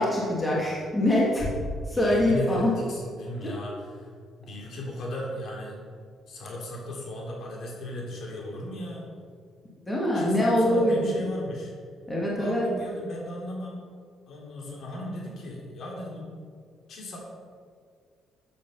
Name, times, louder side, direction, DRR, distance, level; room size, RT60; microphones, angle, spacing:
voice 1, 0.0-1.5 1.9-2.7 9.9-11.1 12.1-12.7, left 1 dB, 10° left, -6 dB, 2.5 m, -24 dB
voice 2, 1.9-4.1 4.4-5.8 6.3-9.1 10.1-11.7 12.4-13.8 14.3-16.3 16.9-17.2, left 1 dB, 50° left, -2 dB, 3.7 m, -36 dB
13.5 x 8.6 x 5.7 m, 2.1 s
cardioid pair, 155°, 0 cm